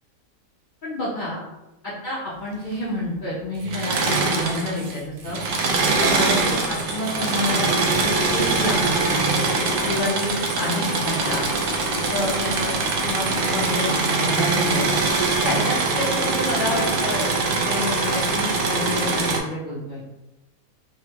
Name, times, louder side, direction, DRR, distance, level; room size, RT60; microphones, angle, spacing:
voice 1, 0.8-1.4 2.0-5.4 6.0-9.1 9.8-11.5 11.9-12.7 13.0-13.9 14.2-14.8 15.4-20.0, left 1 dB, 55° left, -8 dB, 0.5 m, -28 dB
Engine / Mechanisms, 3.6-5.0 5.2-19.4, right 3 dB, 80° right, 1.2 m, -23 dB
3.9 x 2.1 x 2.8 m, 0.98 s
omnidirectional pair, 1.8 m